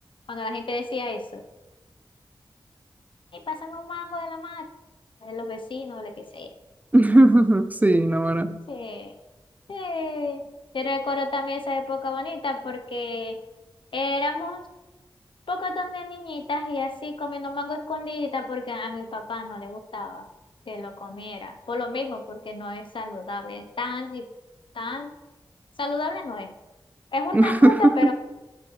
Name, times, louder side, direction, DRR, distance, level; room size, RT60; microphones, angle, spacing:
voice 1, 0.3-1.4 3.3-4.7 5.2-6.5 8.7-9.1 9.7-10.4 10.7-13.4 13.9-14.6 15.5-20.3 20.7-24.3 24.7-25.1 25.8-26.5 27.1-28.1, left 2 dB, 75° left, 5 dB, 0.8 m, -31 dB
voice 2, 6.9-8.6 27.3-28.1, right 1 dB, 20° right, 10 dB, 0.4 m, -17 dB
11.5 x 5.9 x 3.2 m, 1.1 s
wide cardioid pair, 85°, 9 cm